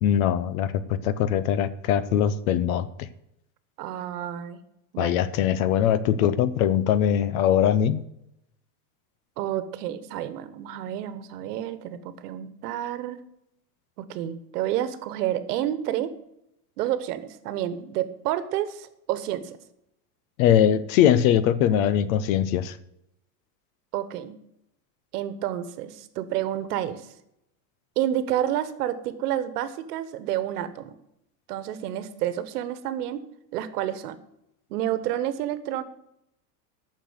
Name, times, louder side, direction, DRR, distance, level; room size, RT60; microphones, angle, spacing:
voice 1, 0.0-2.9 5.0-8.0 20.4-22.8, left 10 dB, 60° left, 15 dB, 0.9 m, -21 dB
voice 2, 3.8-4.6 4.9-5.1 9.4-13.2 14.0-16.1 16.8-19.6 23.9-24.3 25.1-27.1 28.0-30.9 31.5-33.2 33.5-34.2 34.7-35.8, right 12 dB, 75° right, 13 dB, 1.3 m, -29 dB
10.0 x 6.4 x 8.0 m, 0.81 s
supercardioid pair, 150°, 47 cm